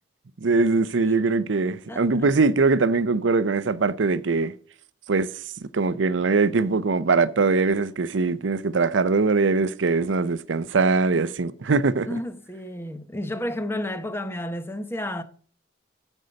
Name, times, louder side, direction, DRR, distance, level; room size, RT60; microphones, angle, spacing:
voice 1, 0.4-4.5 5.1-5.3 5.7-12.2, right 4 dB, 80° right, 0.6 m, -22 dB
voice 2, 1.9-2.3 12.0-15.2, left 1 dB, 15° left, 0.8 m, -31 dB
14.0 x 5.5 x 5.2 m
head